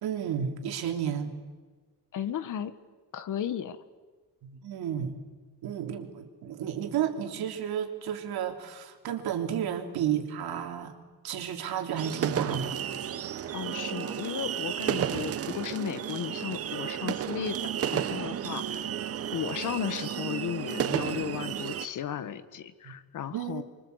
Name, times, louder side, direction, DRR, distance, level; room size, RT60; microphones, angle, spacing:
voice 1, 0.0-1.3 4.4-5.2 5.6-11.0 11.2-12.7 22.8-23.0 23.3-23.6, right 9 dB, 60° right, 5 dB, 3.4 m, -32 dB
voice 2, 2.1-2.7 3.1-3.8 13.5-18.9 19.3-23.6, left 9 dB, 45° left, 12 dB, 1.5 m, -35 dB
sound 1, 12.0-21.9, right 9 dB, 35° right, 0.8 m, -32 dB
28.5 x 24.5 x 8.1 m, 1.4 s
cardioid pair, 165°, 41 cm